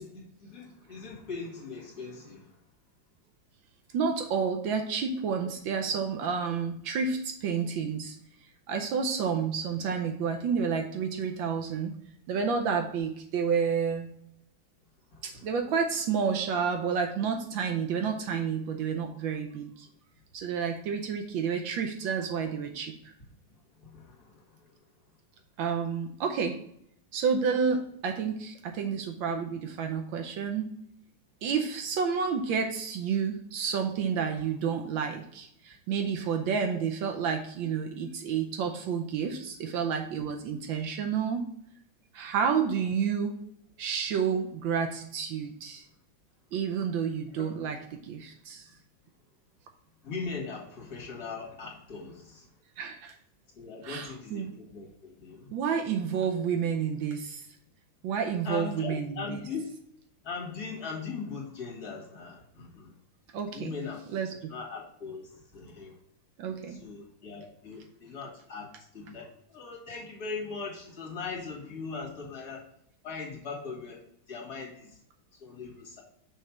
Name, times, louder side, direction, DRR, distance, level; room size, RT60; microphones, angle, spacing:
voice 1, 0.0-2.5 15.1-15.4 23.8-24.4 47.3-47.5 50.0-52.5 53.6-55.5 58.4-59.7 60.2-62.9 63.5-64.0 64.5-66.0 66.7-72.6 73.0-75.0 75.4-76.0, left 4 dB, 50° left, -2 dB, 2.3 m, -40 dB
voice 2, 3.9-8.2 8.7-12.0 12.3-14.1 15.2-19.9 20.3-23.1 25.6-26.6 27.1-30.7 31.4-41.5 42.1-43.4 43.8-45.9 46.5-48.7 52.8-53.2 53.8-54.5 55.5-57.5 58.0-59.4 63.3-63.7 64.1-64.5 66.4-66.8, right 6 dB, 75° right, 4 dB, 1.4 m, -30 dB
6.4 x 3.2 x 5.8 m, 0.71 s
omnidirectional pair, 2.2 m